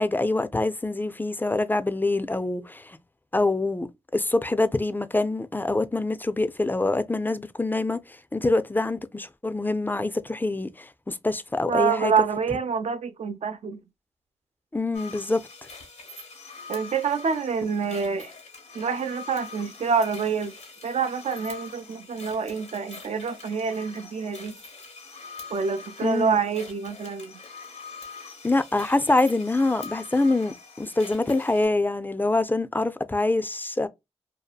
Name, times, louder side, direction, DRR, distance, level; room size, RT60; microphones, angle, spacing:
voice 1, 0.0-3.0 3.3-3.9 4.1-12.1 14.7-15.4 26.0-26.4 28.4-33.9, left 2 dB, 15° left, 0.3 m, -25 dB
voice 2, 11.7-13.8 16.7-18.3 18.7-20.5 20.8-24.6 25.5-27.3, right 6 dB, 75° right, 0.4 m, -27 dB
sound 1, 14.9-31.7, left 4 dB, 85° left, 0.9 m, -44 dB
2.6 x 2.4 x 2.2 m
cardioid pair, 60°, 12 cm